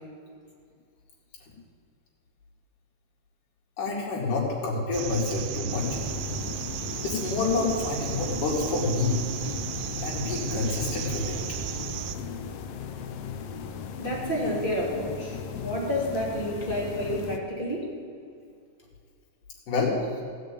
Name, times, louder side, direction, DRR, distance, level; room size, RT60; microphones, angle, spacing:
voice 1, 3.8-5.9 7.0-9.2 10.0-11.4 19.7-20.0, left 3 dB, 70° left, -4 dB, 3.9 m, -28 dB
sound 1, 4.9-12.2, right 11 dB, 80° right, 2.2 m, -35 dB
sound 2, 5.7-17.4, left 6 dB, 90° left, 1.3 m, -37 dB
voice 2, 14.0-17.9, equal, 15° left, -3 dB, 2.4 m, -30 dB
15.0 x 6.4 x 8.7 m, 2.2 s
omnidirectional pair, 3.9 m